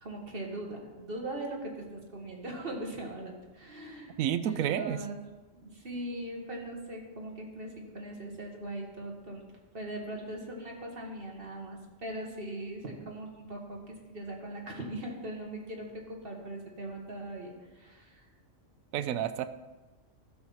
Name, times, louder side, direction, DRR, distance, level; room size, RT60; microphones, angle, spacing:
voice 1, 0.0-4.1 4.4-5.2 5.5-9.4 9.7-18.2, right 1 dB, 45° right, 0 dB, 1.8 m, -40 dB
voice 2, 4.2-5.0 18.9-19.5, right 10 dB, 90° right, 11 dB, 1.0 m, -29 dB
12.5 x 6.1 x 5.6 m, 1.2 s
omnidirectional pair, 1.4 m